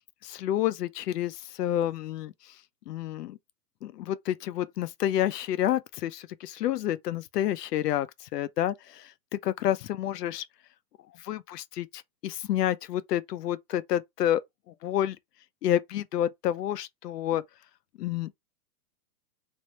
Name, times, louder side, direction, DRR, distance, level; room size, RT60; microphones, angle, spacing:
voice 1, 0.2-2.5 2.9-3.4 3.8-10.4 11.2-14.4 14.7-15.2 15.6-17.4 18.0-18.5, left 11 dB, 80° left, 0.6 m, -29 dB
3.2 x 2.6 x 2.9 m
hypercardioid pair, 170°, 47 cm